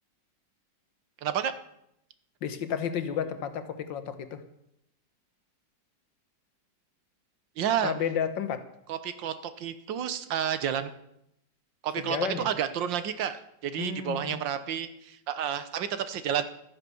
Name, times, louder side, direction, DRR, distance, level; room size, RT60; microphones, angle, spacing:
voice 1, 1.2-1.5 7.6-7.9 8.9-10.9 11.8-16.5, right 9 dB, 85° right, 11 dB, 1.7 m, -30 dB
voice 2, 2.4-4.4 7.8-8.6 12.0-12.5 13.8-14.4, left 7 dB, 80° left, 10 dB, 1.8 m, -32 dB
13.0 x 10.0 x 7.0 m, 0.78 s
omnidirectional pair, 2.0 m